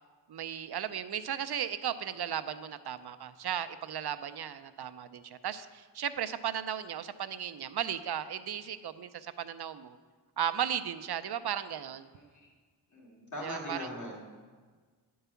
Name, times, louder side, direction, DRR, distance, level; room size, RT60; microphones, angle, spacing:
voice 1, 0.3-10.0 10.4-12.1 13.4-13.9, right 9 dB, 65° right, 12 dB, 0.6 m, -35 dB
voice 2, 12.9-14.4, equal, 45° left, -4 dB, 2.8 m, -41 dB
10.0 x 4.7 x 6.9 m, 1.5 s
wide cardioid pair, 80°, 41 cm